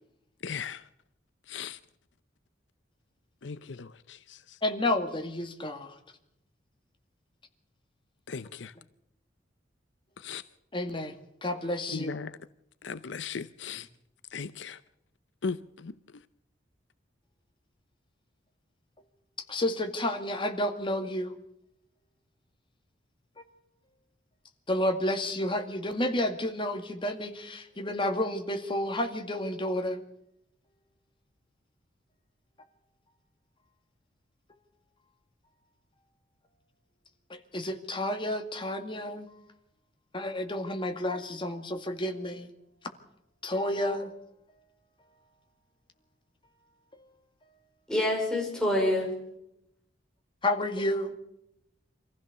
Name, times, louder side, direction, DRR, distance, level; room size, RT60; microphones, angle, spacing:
voice 1, 0.4-0.8 1.5-1.8 3.4-4.4 8.3-8.7 10.2-10.4 11.9-12.3 12.8-13.9 14.3-14.8 15.4-15.6 15.8-15.9, left 5 dB, 80° left, 0.7 m, -37 dB
voice 2, 4.6-5.9 10.7-11.2 11.4-12.2 19.5-21.4 24.7-30.0 37.5-39.3 40.1-42.5 43.4-44.1 50.4-51.1, left 1 dB, 30° left, 2.2 m, -30 dB
voice 3, 47.9-49.1, left 1 dB, 5° left, 5.2 m, -26 dB
25.0 x 15.5 x 6.8 m
head